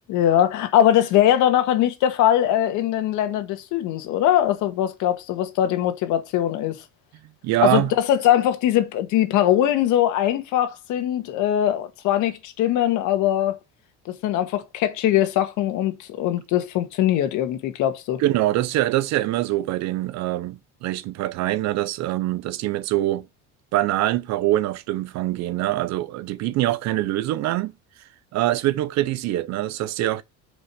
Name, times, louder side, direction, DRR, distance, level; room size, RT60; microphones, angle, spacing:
voice 1, 0.1-6.8 7.6-13.6 14.2-18.2, left 11 dB, 60° left, 1.7 m, -21 dB
voice 2, 7.4-7.9 18.2-23.3 23.7-27.7 28.3-30.2, right 15 dB, 55° right, 0.7 m, -24 dB
6.6 x 5.2 x 6.2 m
cardioid pair, 160°, 33 cm